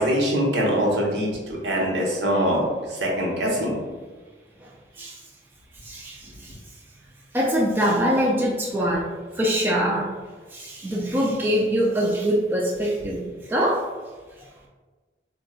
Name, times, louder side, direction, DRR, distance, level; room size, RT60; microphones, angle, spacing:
voice 1, 0.0-2.6 2.9-3.8, equal, 75° right, -3 dB, 0.8 m, -23 dB
voice 2, 5.8-6.6 7.3-9.1 9.3-10.1 10.5-13.8, equal, 10° right, -4 dB, 0.3 m, -23 dB
4.2 x 2.2 x 2.3 m, 1.3 s
head